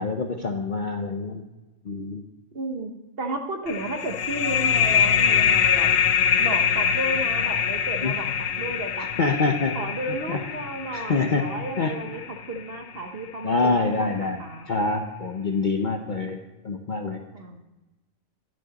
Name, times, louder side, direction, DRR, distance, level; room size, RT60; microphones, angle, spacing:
voice 1, 0.0-1.4 1.8-2.2 8.0-8.1 9.0-9.8 10.3-10.5 10.9-12.3 13.4-16.4 16.6-17.2, left 3 dB, 50° left, 4 dB, 0.6 m, -26 dB
voice 2, 2.5-2.9 3.2-5.9 6.4-8.3 8.6-9.3 9.7-14.7 17.3-17.6, right 2 dB, 45° right, 5 dB, 1.1 m, -33 dB
sound 1, 3.7-13.0, left 8 dB, 75° left, 1.0 m, -24 dB
9.9 x 9.2 x 4.0 m, 1.1 s
omnidirectional pair, 1.4 m